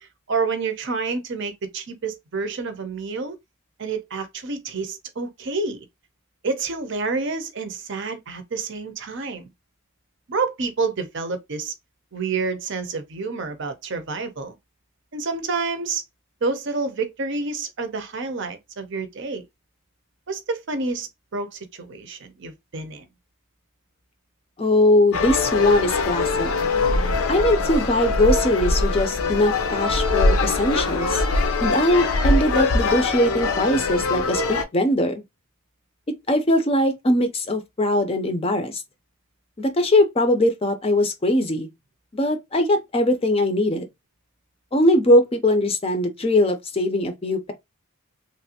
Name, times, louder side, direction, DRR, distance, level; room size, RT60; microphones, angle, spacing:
voice 1, 0.3-3.4 3.8-5.8 6.4-9.5 10.3-11.7 12.1-14.5 15.1-16.0 16.4-19.4 20.3-23.1, right 4 dB, 55° right, 0.6 m, -28 dB
voice 2, 24.6-26.5 27.3-31.2 31.6-35.2 36.3-38.8 39.6-41.7 42.1-43.8 44.7-47.5, left 1 dB, 25° left, 0.5 m, -21 dB
sound 1, 25.1-34.6, left 3 dB, 85° left, 0.6 m, -22 dB
3.2 x 2.5 x 2.8 m
head